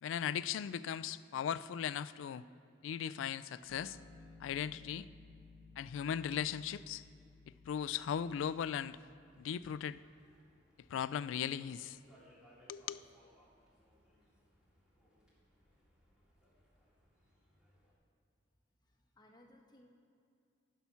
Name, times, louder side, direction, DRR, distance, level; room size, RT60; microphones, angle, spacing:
voice 1, 0.0-2.4 2.8-4.0 4.4-5.1 5.8-7.0 7.7-9.0 9.4-10.0 10.9-12.0 12.7-13.0, left 8 dB, 85° left, 16 dB, 0.3 m, -38 dB
sound 1, 3.7-10.5, left 3 dB, 65° left, 0.8 m, -60 dB
sound 2, 7.9-17.9, equal, 5° right, 2.0 m, -68 dB
voice 2, 18.8-19.9, left 1 dB, 25° left, 1 dB, 1.0 m, -63 dB
10.5 x 5.8 x 5.6 m, 2.5 s
head